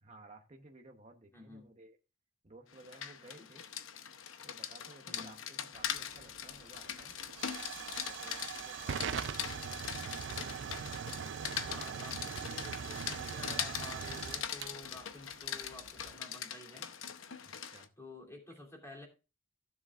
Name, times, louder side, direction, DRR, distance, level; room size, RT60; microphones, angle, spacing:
voice 1, 0.0-2.0 2.4-3.6 4.4-7.2 7.9-10.1 17.4-17.9, right 2 dB, 35° right, 2 dB, 1.0 m, -56 dB
voice 2, 1.3-1.7 3.4-3.5 5.1-5.4 11.6-16.9 18.0-19.1, left 2 dB, 15° left, 0 dB, 2.9 m, -51 dB
Rain, 2.7-17.9, left 9 dB, 85° left, 0.8 m, -42 dB
Hiss / Fire / Tick, 5.7-16.1, right 7 dB, 65° right, 0.4 m, -42 dB
15.5 x 7.3 x 2.4 m, 0.31 s
head